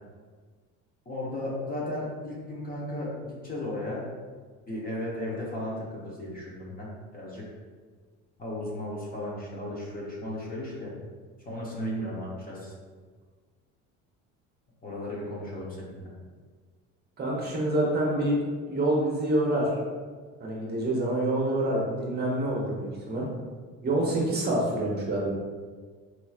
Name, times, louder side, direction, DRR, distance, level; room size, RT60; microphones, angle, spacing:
voice 1, 1.1-4.1 4.7-7.5 8.4-10.9 11.4-12.7 14.8-16.1, left 1 dB, 30° left, -5 dB, 1.0 m, -35 dB
voice 2, 17.2-18.4 18.7-19.7 20.4-23.3 23.8-25.3, right 1 dB, 30° right, -4 dB, 0.8 m, -26 dB
4.3 x 3.0 x 2.4 m, 1.5 s
cardioid pair, 125°, 31 cm